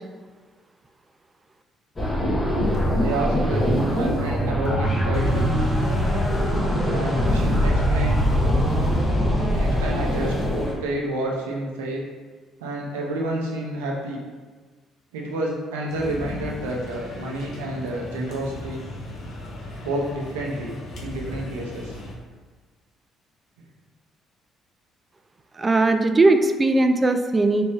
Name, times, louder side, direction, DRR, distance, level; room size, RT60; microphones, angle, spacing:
sound 1, 2.0-10.7, equal, 30° left, 1.1 m, -22 dB
voice 1, 3.0-5.6 6.9-8.3 9.5-10.3 10.8-12.0 12.6-14.2 15.1-18.8 19.8-20.7 21.0-22.0, right 1 dB, 85° right, -2 dB, 0.6 m, -29 dB
sound 2, 15.9-22.2, left 2 dB, 60° left, 0.8 m, -37 dB
voice 2, 25.6-27.6, right 2 dB, 30° right, 7 dB, 0.4 m, -19 dB
3.3 x 3.0 x 3.3 m, 1.4 s
hypercardioid pair, 50°, 0 cm